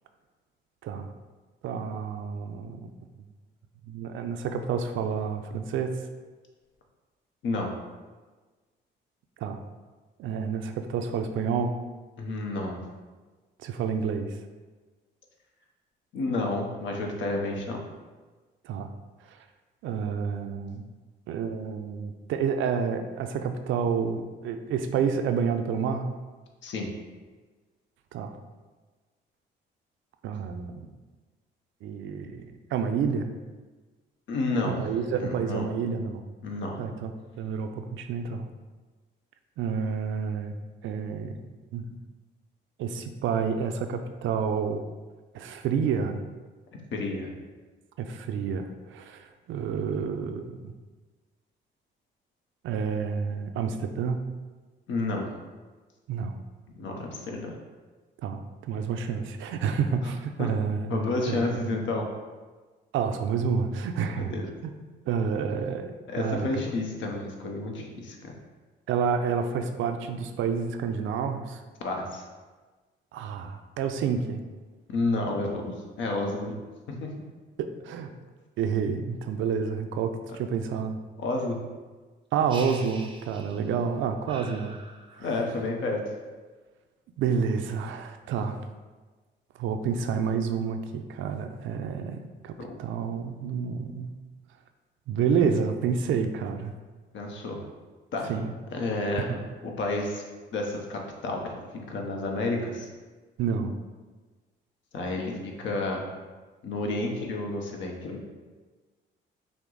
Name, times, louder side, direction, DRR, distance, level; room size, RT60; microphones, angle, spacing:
voice 1, 1.6-2.9 3.9-5.9 9.4-9.6 10.2-11.8 13.6-14.4 18.6-18.9 19.3-19.4 19.8-20.9 21.3-26.1 28.1-28.3 30.2-30.9 31.8-33.3 34.6-36.2 36.8-37.1 37.4-38.5 39.6-40.5 40.8-41.4 41.7-41.9 42.8-44.8 45.3-46.2 48.0-50.7 52.6-54.2 56.1-56.4 58.2-61.7 62.9-64.3 64.6-64.7 65.1-66.6 68.9-71.6 73.1-74.4 77.6-78.1 78.6-81.0 82.3-84.8 87.2-88.6 89.6-94.1 95.1-96.7 98.3-98.5 99.3-99.4 103.4-103.8, right 6 dB, 80° right, 7 dB, 0.4 m, -29 dB
voice 2, 12.2-12.8 16.1-17.8 26.6-26.9 34.3-34.8 35.1-35.7 36.4-36.8 46.9-47.4 54.9-55.3 56.7-57.5 60.4-60.5 60.9-62.0 64.2-64.5 66.1-68.4 71.8-72.2 74.9-76.6 76.9-77.1 81.2-81.6 85.2-86.0 92.6-92.8 97.1-97.6 98.1-98.3 98.7-99.3 99.6-100.2 100.5-102.9 104.9-106.1 106.6-108.2, left 2 dB, 70° left, 1 dB, 0.9 m, -30 dB
sound 1, 82.5-83.8 84.3-85.5, right 3 dB, 25° right, 0.5 m, -44 dB
5.8 x 2.0 x 3.8 m, 1.3 s
cardioid pair, 90°, 20 cm